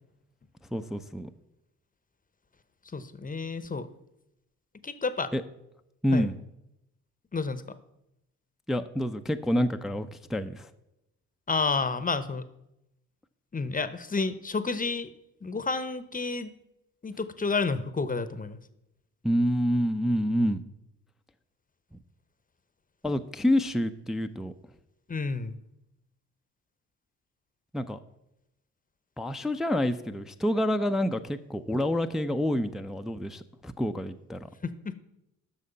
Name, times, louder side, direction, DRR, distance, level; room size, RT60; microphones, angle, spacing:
voice 1, 0.7-1.3 5.3-5.4 6.0-6.3 8.7-10.7 19.2-20.6 23.0-24.5 27.7-28.0 29.2-34.5, equal, ahead, 8 dB, 0.4 m, -28 dB
voice 2, 2.9-3.9 4.8-5.3 6.1-6.3 7.3-7.6 11.5-12.4 13.5-15.1 15.4-16.5 17.0-18.6 25.1-25.6 34.6-34.9, left 4 dB, 20° left, 13 dB, 0.7 m, -30 dB
8.6 x 6.4 x 5.5 m, 0.86 s
hypercardioid pair, 40°, 45 cm